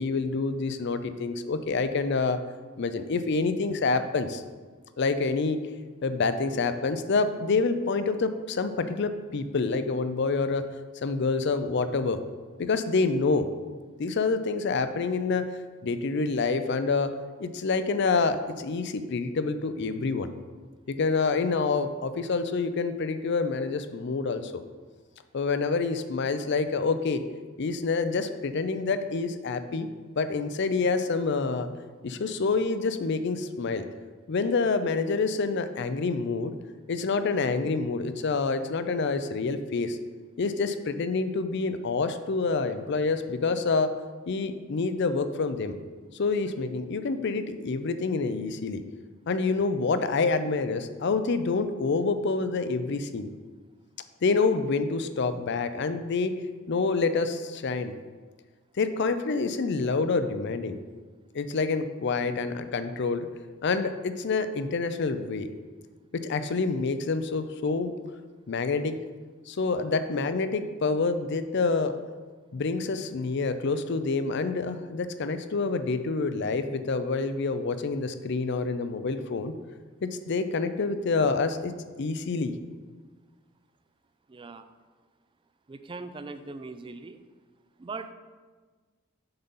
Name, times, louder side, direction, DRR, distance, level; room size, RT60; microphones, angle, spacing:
voice 1, 0.0-2.4 2.8-4.4 5.0-5.6 6.0-10.6 11.0-12.2 12.6-13.5 14.0-15.5 15.8-17.1 17.4-20.3 20.9-24.6 25.3-27.2 27.6-29.9 30.2-31.7 32.0-33.9 34.3-36.5 36.9-40.0 40.4-43.9 44.3-45.8 46.2-48.8 49.3-53.3 54.2-56.3 56.7-57.9 58.8-60.8 61.3-63.3 63.6-65.5 66.1-67.9 68.5-69.0 69.5-72.0 72.5-79.5 80.0-82.5, left 4 dB, 60° left, 11 dB, 0.5 m, -27 dB
voice 2, 84.3-84.7 85.7-87.2 87.8-88.1, right 3 dB, 25° right, 10 dB, 0.4 m, -40 dB
7.9 x 3.9 x 5.5 m, 1.4 s
head